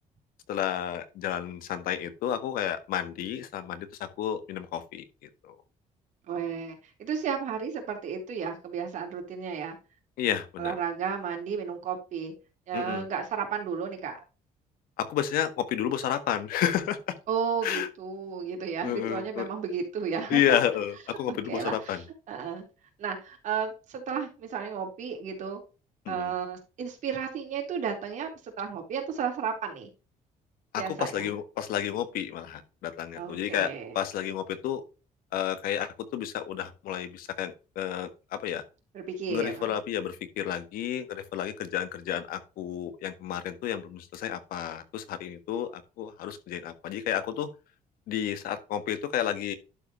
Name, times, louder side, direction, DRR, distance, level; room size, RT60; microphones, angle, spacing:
voice 1, 0.5-3.9 4.2-5.5 10.2-10.7 12.7-13.1 15.0-17.1 17.6-17.9 18.8-19.5 20.3-22.0 26.0-26.3 30.7-34.8 35.3-38.6 39.3-47.5 48.1-49.5, left 10 dB, 85° left, 11 dB, 1.4 m, -31 dB
voice 2, 6.3-9.8 10.6-12.3 12.7-14.2 17.3-20.6 21.3-22.7 23.0-25.6 26.1-29.9 30.8-31.3 33.2-33.9 38.9-39.7, right 6 dB, 60° right, 2 dB, 3.6 m, -33 dB
11.5 x 5.1 x 3.1 m, 0.31 s
cardioid pair, 150°, 15 cm